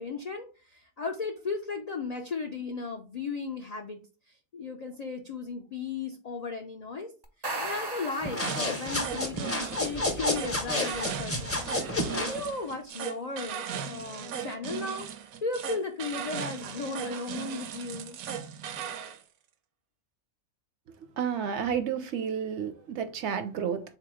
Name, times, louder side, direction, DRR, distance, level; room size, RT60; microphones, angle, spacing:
voice 1, 0.0-4.0 4.3-7.1 7.4-11.6 11.9-15.1 15.4-18.2, left 4 dB, 70° left, 0.3 m, -36 dB
sound 1, 7.2-9.2, right 2 dB, 35° right, 0.4 m, -37 dB
sound 2, 8.2-12.4, left 2 dB, 15° left, 0.5 m, -30 dB
sound 3, 8.4-19.2, right 8 dB, 85° right, 1.0 m, -37 dB
voice 2, 21.2-23.8, right 7 dB, 65° right, 0.8 m, -31 dB
3.8 x 2.9 x 4.8 m
omnidirectional pair, 1.4 m